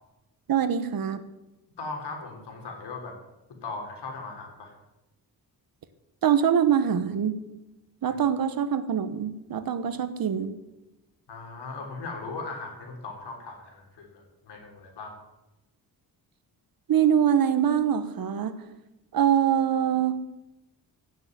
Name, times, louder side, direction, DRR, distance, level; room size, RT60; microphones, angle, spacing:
voice 1, 0.5-1.2 6.2-7.3 8.0-10.5 16.9-18.5 19.1-20.1, right 8 dB, 60° right, 12 dB, 1.2 m, -24 dB
voice 2, 1.8-3.2 3.6-4.8 8.1-8.2 11.3-15.2, left 3 dB, 85° left, 3 dB, 3.8 m, -38 dB
15.5 x 6.8 x 9.2 m, 0.97 s
wide cardioid pair, 175°, 40 cm